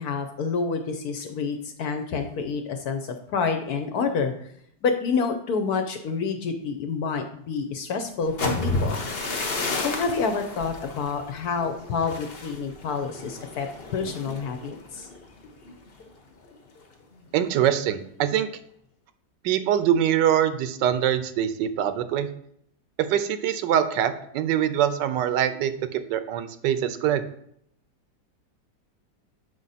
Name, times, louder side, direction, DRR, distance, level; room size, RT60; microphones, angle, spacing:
voice 1, 0.0-4.3 4.8-9.0 9.8-13.7 13.9-15.1, left 5 dB, 65° left, 5 dB, 1.0 m, -28 dB
sound 1, 8.2-16.1 16.4-16.8 17.1-17.5, left 3 dB, 45° left, 0.8 m, -32 dB
voice 2, 17.3-18.5 19.4-22.3 23.0-27.2, right 10 dB, 75° right, 11 dB, 1.2 m, -24 dB
7.5 x 5.1 x 4.1 m, 0.69 s
omnidirectional pair, 2.0 m